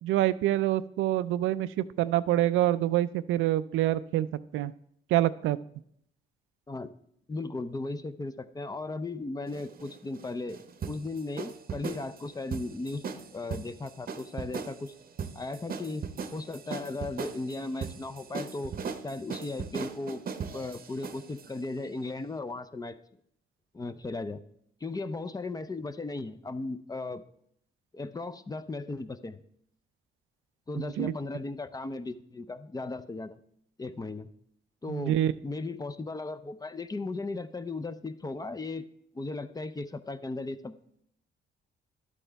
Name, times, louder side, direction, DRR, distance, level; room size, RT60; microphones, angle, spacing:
voice 1, 0.0-4.3 4.5-4.7 5.1-5.6 30.8-31.1 34.9-35.3, right 13 dB, 85° right, 15 dB, 0.4 m, -26 dB
voice 2, 7.3-10.6 10.9-14.9 15.3-16.0 16.3-18.8 19.0-20.2 20.5-23.0 23.7-24.4 24.8-27.2 27.9-29.4 30.7-33.4 33.8-34.3 34.8-38.9 39.1-40.8, left 3 dB, 20° left, 11 dB, 0.5 m, -36 dB
sound 1, 9.5-21.5, right 6 dB, 45° right, 0.8 m, -38 dB
11.5 x 8.4 x 3.4 m, 0.71 s
cardioid pair, 90°, 20 cm